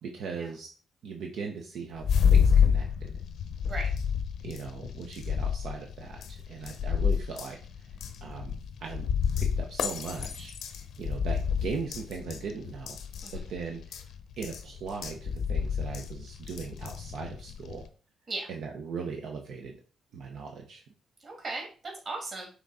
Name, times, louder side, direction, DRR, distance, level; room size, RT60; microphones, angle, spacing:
voice 1, 0.0-0.7 1.0-3.1 4.4-7.6 8.2-9.1 9.4-10.5 11.0-13.0 13.5-14.0 14.4-17.8 18.5-19.7 20.1-20.8, right 5 dB, 75° right, 2 dB, 0.9 m, -39 dB
sound 1, 2.0-17.9, left 7 dB, 70° left, 0.7 m, -29 dB
voice 2, 21.2-22.5, right 3 dB, 40° right, 0 dB, 2.5 m, -37 dB
6.1 x 3.8 x 4.1 m, 0.38 s
cardioid pair, 140°, 0 cm